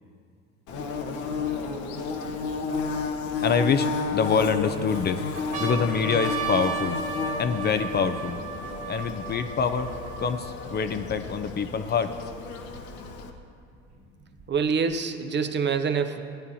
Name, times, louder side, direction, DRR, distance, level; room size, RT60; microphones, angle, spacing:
Bird / Buzz, 0.7-13.3, left 4 dB, 60° left, 1.0 m, -32 dB
sound 1, 1.0-1.1 1.8-3.1 3.8-4.5 5.0-5.1 5.3-11.0 11.7-11.8 11.9-13.0 13.9-14.9, right 5 dB, 65° right, 2.4 m, -35 dB
voice 1, 3.4-5.2 5.6-7.0 7.4-8.4 8.9-9.9 10.2-12.1, left 6 dB, 30° left, 9 dB, 0.5 m, -25 dB
voice 2, 14.5-16.2, right 5 dB, 35° right, 7 dB, 0.7 m, -25 dB
16.0 x 9.6 x 2.7 m, 2.4 s
hypercardioid pair, 70°, 33 cm